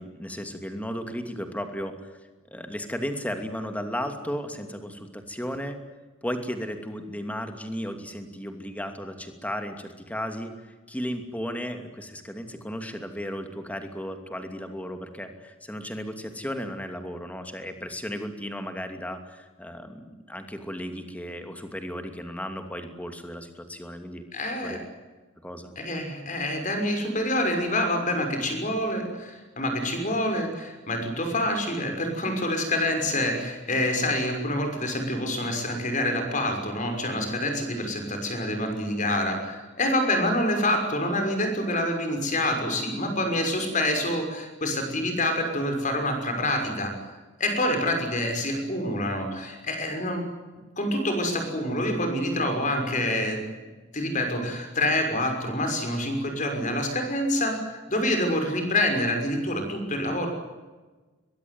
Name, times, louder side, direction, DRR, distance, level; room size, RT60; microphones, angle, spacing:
voice 1, 0.0-2.1 2.5-5.8 6.2-24.2 24.6-24.8 25.4-25.7, equal, 5° left, 6 dB, 2.7 m, -35 dB
voice 2, 24.3-24.8 25.8-46.9 47.4-50.2 50.8-53.4 53.9-60.3, left 1 dB, 35° left, 5 dB, 6.1 m, -27 dB
23.0 x 22.0 x 9.6 m, 1.3 s
head